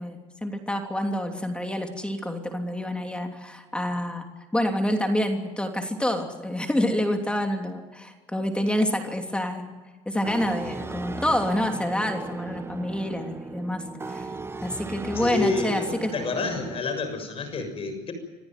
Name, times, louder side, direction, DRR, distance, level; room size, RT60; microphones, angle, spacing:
voice 1, 0.0-4.3 4.5-9.7 10.0-14.3 14.6-16.1, left 1 dB, 5° left, 4 dB, 3.1 m, -27 dB
sound 1, 10.2-16.8, right 3 dB, 15° right, 1.1 m, -36 dB
voice 2, 15.1-18.1, left 3 dB, 40° left, 8 dB, 6.8 m, -29 dB
26.5 x 15.0 x 9.4 m, 1.3 s
supercardioid pair, 90°, 14 cm